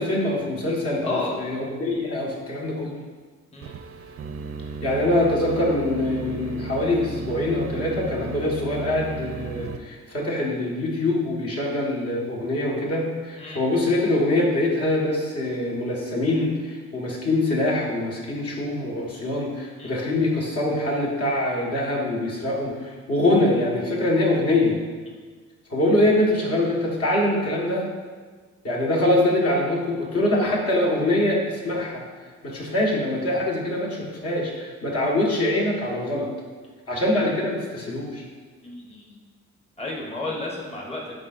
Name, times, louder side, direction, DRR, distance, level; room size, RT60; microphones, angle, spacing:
voice 1, 0.0-2.9 4.8-24.8 25.7-27.9 28.6-32.0 32.4-36.3 36.9-38.2, left 1 dB, 50° left, -3 dB, 1.6 m, -24 dB
voice 2, 1.0-1.4 3.5-3.7 13.4-13.6 19.8-20.0 38.6-39.2 39.8-41.1, left 2 dB, 20° left, -2 dB, 1.2 m, -31 dB
sound 1, 3.6-9.8, right 4 dB, 50° right, 0.5 m, -35 dB
9.4 x 3.9 x 2.6 m, 1.5 s
cardioid pair, 90°, 30 cm